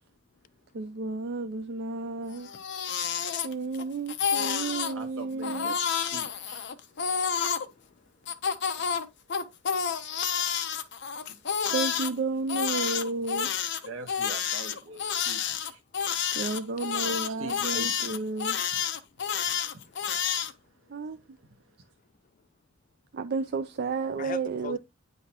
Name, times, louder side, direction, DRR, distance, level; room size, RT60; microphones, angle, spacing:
voice 1, 0.7-2.5 3.4-5.8 11.7-13.5 16.3-18.6 20.9-21.2 23.1-24.8, right 4 dB, 55° right, 0.4 m, -32 dB
Crying sobbing, 2.4-3.8 4.1-4.9 5.4-7.7 8.3-12.1 12.5-20.5, left 7 dB, 60° left, 0.7 m, -29 dB
voice 2, 4.9-6.7 13.8-15.8 17.0-18.2 19.7-19.8, right 2 dB, 75° right, 1.2 m, -43 dB
voice 3, 7.0-7.3 7.6-7.9 16.1-16.3 19.8-20.2 24.2-24.8, left 6 dB, 40° left, 0.3 m, -42 dB
9.5 x 3.9 x 2.9 m
head